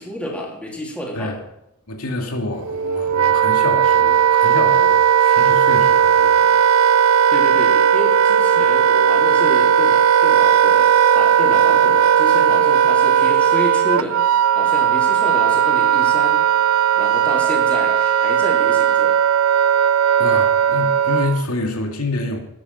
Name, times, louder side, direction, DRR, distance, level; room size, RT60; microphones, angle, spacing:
voice 1, 0.0-1.3 7.3-16.4 17.0-19.2, equal, 5° left, -2 dB, 3.6 m, -30 dB
voice 2, 1.9-6.6 6.9-7.1 20.2-22.4, left 2 dB, 80° left, 3 dB, 2.4 m, -27 dB
Wind instrument woodwind instrument, 2.6-21.4, right 8 dB, 65° right, 0.4 m, -16 dB
14.0 x 10.0 x 6.6 m, 0.83 s
head